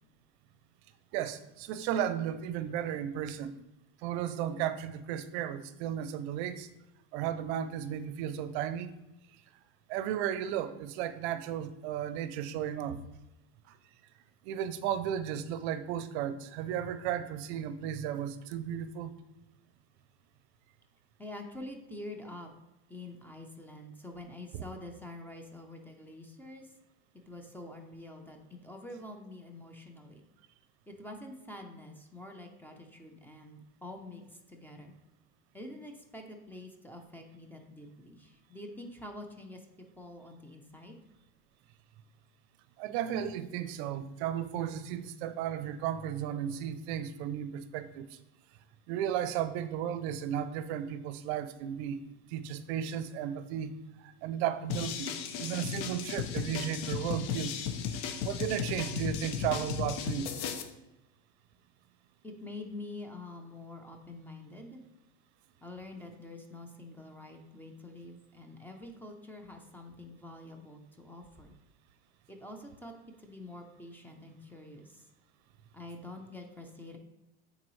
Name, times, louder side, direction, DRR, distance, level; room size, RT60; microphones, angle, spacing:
voice 1, 1.1-3.6 4.0-6.7 7.1-8.9 9.9-13.0 13.7-13.8 14.4-19.2 42.8-48.2 48.9-52.0 52.3-53.7 54.0-57.6 58.2-60.3, right 10 dB, 65° right, 13 dB, 0.5 m, -34 dB
voice 2, 21.2-22.5 22.9-26.7 27.3-30.2 30.9-34.9 35.5-41.0 62.2-64.8 65.6-71.6 72.3-75.1 75.7-77.0, left 1 dB, 5° left, 3 dB, 0.5 m, -46 dB
sound 1, 54.7-60.6, left 8 dB, 65° left, 0.8 m, -35 dB
8.7 x 3.9 x 3.2 m, 0.95 s
supercardioid pair, 140°, 35 cm